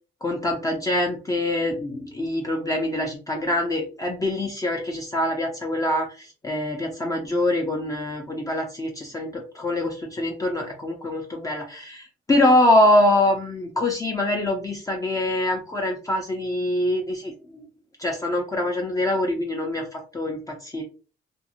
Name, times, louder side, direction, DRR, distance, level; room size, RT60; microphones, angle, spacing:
voice 1, 0.2-17.6 18.0-20.8, left 1 dB, 15° left, 0 dB, 0.6 m, -24 dB
2.6 x 2.3 x 2.8 m, 0.35 s
cardioid pair, 90°, 20 cm